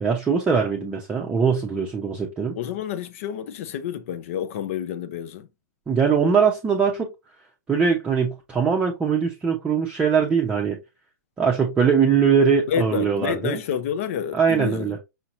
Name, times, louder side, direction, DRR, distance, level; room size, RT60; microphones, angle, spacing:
voice 1, 0.0-2.5 5.9-7.1 7.7-10.8 11.4-13.6 14.3-15.0, right 6 dB, 10° right, 0.7 m, -21 dB
voice 2, 2.5-5.5 12.7-15.0, left 9 dB, 50° left, 0.6 m, -29 dB
5.7 x 2.8 x 2.6 m
hypercardioid pair, 130°, 10 cm